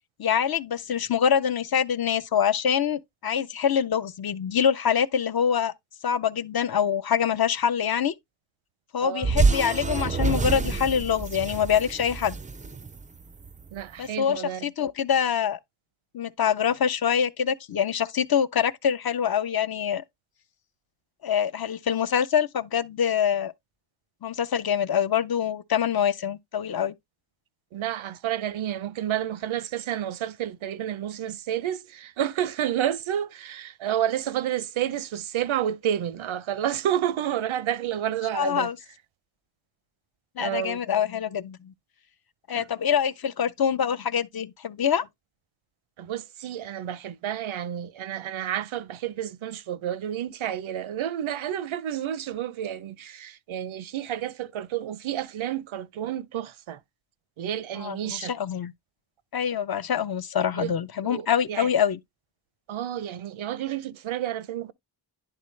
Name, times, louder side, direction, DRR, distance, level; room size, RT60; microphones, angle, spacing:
voice 1, 0.2-5.7 6.0-8.1 8.9-12.4 14.0-15.6 16.1-20.0 21.2-23.5 24.2-26.9 38.3-38.8 40.4-41.7 42.5-45.1 57.8-58.7 59.3-62.0, left 8 dB, 50° left, 0.6 m, -25 dB
voice 2, 9.0-9.4 13.7-14.7 27.7-38.7 40.4-40.8 42.5-42.7 46.0-56.8 57.4-58.4 60.6-60.7 61.0-61.7 62.7-64.7, right 11 dB, 85° right, 0.6 m, -30 dB
sound 1, 9.2-13.6, right 4 dB, 20° right, 0.3 m, -27 dB
10.5 x 3.8 x 3.2 m
wide cardioid pair, 85°, 47 cm